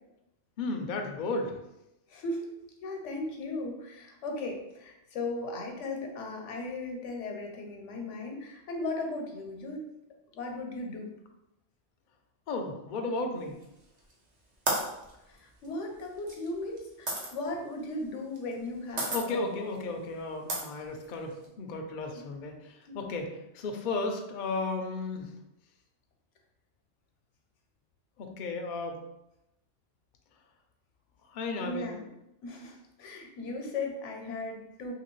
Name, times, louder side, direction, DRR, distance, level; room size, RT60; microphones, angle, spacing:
voice 1, 0.6-1.6 12.5-13.6 19.1-25.3 28.2-29.0 31.3-31.9, left 3 dB, 60° left, 3 dB, 0.5 m, -34 dB
voice 2, 2.1-2.5 2.8-9.8 10.3-11.1 15.3-19.6 22.9-23.0 31.6-32.1 32.4-34.9, left 2 dB, 80° left, 2 dB, 1.0 m, -37 dB
sound 1, 13.6-14.1 14.7-17.3 18.3-18.7 19.0-19.2 19.7-19.8 20.5-21.5, right 2 dB, 40° right, 0.7 m, -33 dB
2.9 x 2.8 x 3.0 m, 0.89 s
omnidirectional pair, 1.2 m